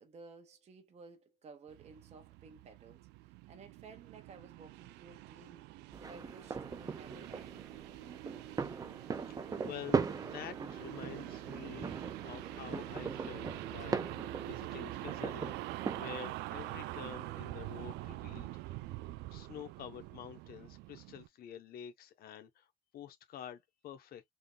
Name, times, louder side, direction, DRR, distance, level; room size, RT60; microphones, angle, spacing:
voice 1, 0.0-7.7, right 4 dB, 40° right, 0.9 m, -55 dB
sound 1, 1.7-21.3, right 17 dB, 90° right, 0.4 m, -45 dB
sound 2, 5.9-16.1, right 4 dB, 20° right, 0.6 m, -39 dB
voice 2, 9.6-10.0 10.3-11.9 12.2-15.6 16.0-18.8 19.3-22.7 22.9-24.2, left 10 dB, 65° left, 0.9 m, -48 dB
3.6 x 2.3 x 3.8 m
cardioid pair, 110°, 17 cm